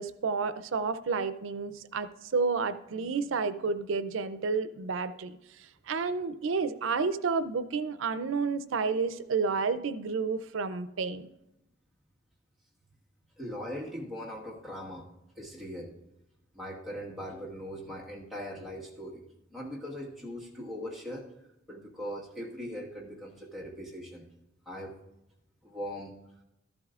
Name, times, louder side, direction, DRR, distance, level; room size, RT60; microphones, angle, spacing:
voice 1, 0.0-11.3, right 4 dB, 85° right, 14 dB, 0.5 m, -31 dB
voice 2, 13.4-15.1 15.3-15.9 16.5-19.2 19.5-21.3 21.7-24.3 24.6-25.0 25.6-26.1, equal, ahead, -5 dB, 1.5 m, -40 dB
13.5 x 11.5 x 2.4 m, 0.89 s
head